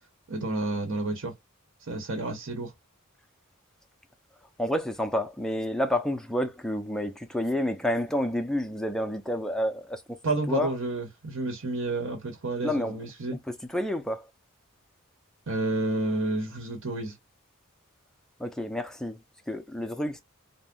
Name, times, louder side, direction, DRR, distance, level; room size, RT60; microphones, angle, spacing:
voice 1, 0.3-1.3 1.9-2.7 10.2-13.3 15.5-17.1, right 2 dB, 65° right, 0.9 m, -30 dB
voice 2, 4.6-10.2 10.5-10.8 12.6-13.0 13.3-14.3 18.4-19.2 19.5-20.2, left 1 dB, 5° left, 0.4 m, -29 dB
2.6 x 2.0 x 3.6 m
head